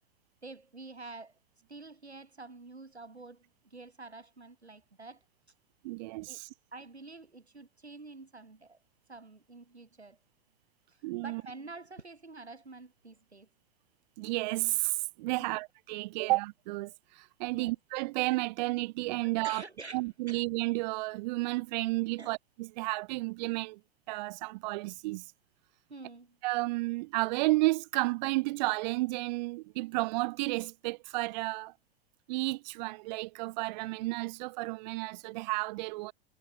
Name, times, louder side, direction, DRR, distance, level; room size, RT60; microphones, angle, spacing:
voice 1, 0.4-1.4 1.7-5.2 6.3-6.4 6.7-8.8 9.1-10.2 10.9-13.5 15.4-15.6 17.5-17.8 19.2-20.4 22.2-22.4 25.9-26.4, right 3 dB, 85° right, 2.5 m, -48 dB
voice 2, 5.8-6.5 11.0-11.4 14.2-19.6 19.9-23.8 24.1-25.3 26.4-31.7 32.3-36.1, right 22 dB, 45° right, 1.0 m, -32 dB
figure-of-eight pair, 95°, 32 cm